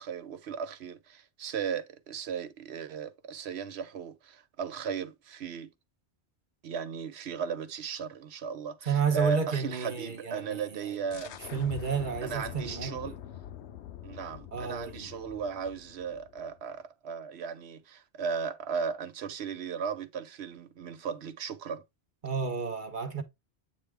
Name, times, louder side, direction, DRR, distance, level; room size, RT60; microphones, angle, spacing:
voice 1, 0.0-5.7 6.6-11.3 12.2-13.2 14.0-21.8, right 6 dB, 70° right, 1.1 m, -36 dB
voice 2, 8.9-10.9 11.5-13.1 14.5-15.1 22.2-23.2, right 6 dB, 50° right, 1.1 m, -31 dB
sound 1, 11.1-16.6, left 11 dB, 85° left, 0.9 m, -45 dB
8.4 x 3.3 x 3.5 m
omnidirectional pair, 1.1 m